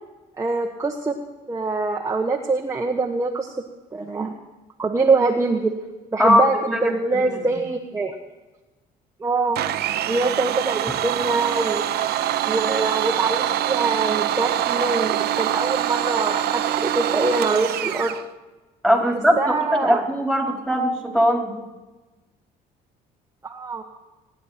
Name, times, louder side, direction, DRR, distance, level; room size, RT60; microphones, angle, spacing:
voice 1, 0.4-1.2 1.5-3.6 3.9-4.3 4.8-5.7 6.1-6.5 6.8-8.2 9.2-9.6 10.1-11.8 12.4-18.1 19.4-20.0 23.4-23.8, right 3 dB, 20° right, 1 dB, 1.3 m, -24 dB
voice 2, 6.2-7.5 10.9-11.0 18.8-19.3 19.8-21.5, equal, 5° left, 0 dB, 4.4 m, -20 dB
Domestic sounds home sounds, 9.5-18.2, right 12 dB, 70° right, 0.9 m, -24 dB
25.5 x 10.5 x 4.4 m, 1.2 s
cardioid pair, 110°, 17 cm